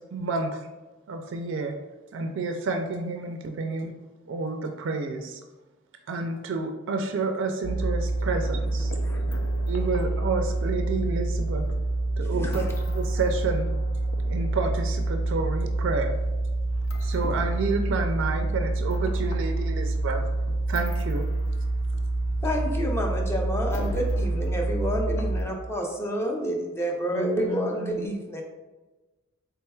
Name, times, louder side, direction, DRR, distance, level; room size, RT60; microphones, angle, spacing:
voice 1, 0.1-0.7 1.1-1.7 2.1-3.9 4.3-5.4 6.1-8.9 9.6-11.6 12.2-13.7 14.3-16.1 17.0-20.2 20.7-21.3, right 3 dB, 60° right, 5 dB, 0.3 m, -29 dB
sound 1, 7.6-25.4, right 2 dB, 65° left, 0.4 m, -27 dB
voice 2, 8.9-9.4 12.2-12.7 22.4-28.4, equal, 10° left, 0 dB, 0.5 m, -29 dB
voice 3, 27.1-28.0, right 2 dB, 85° left, -4 dB, 1.2 m, -32 dB
4.4 x 3.4 x 2.3 m, 1.2 s
head